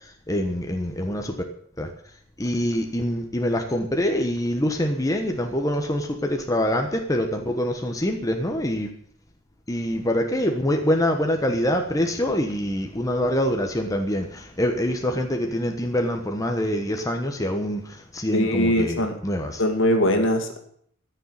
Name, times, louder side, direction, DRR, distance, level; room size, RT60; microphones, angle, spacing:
voice 1, 0.3-1.3 1.8-1.9 2.4-8.9 9.7-19.6, equal, 15° left, 3 dB, 1.1 m, -25 dB
voice 2, 18.3-19.1 19.6-20.6, equal, 60° left, 5 dB, 2.2 m, -21 dB
14.0 x 6.9 x 8.7 m, 0.63 s
head